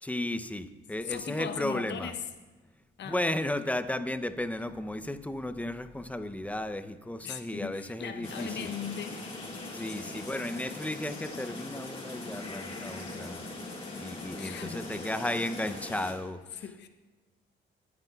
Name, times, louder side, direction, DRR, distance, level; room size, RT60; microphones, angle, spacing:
voice 1, 0.0-2.1 3.0-8.7 9.7-13.5 13.9-16.4, left 1 dB, 5° left, 10 dB, 0.6 m, -34 dB
voice 2, 1.0-2.2 3.0-3.3 7.2-9.2 10.0-10.5 13.8-14.1 14.4-15.2 16.5-16.9, left 7 dB, 65° left, 8 dB, 0.8 m, -39 dB
sound 1, 8.2-16.1, left 2 dB, 30° left, 3.0 m, -41 dB
18.5 x 9.5 x 2.3 m, 1.3 s
cardioid pair, 90°, 20 cm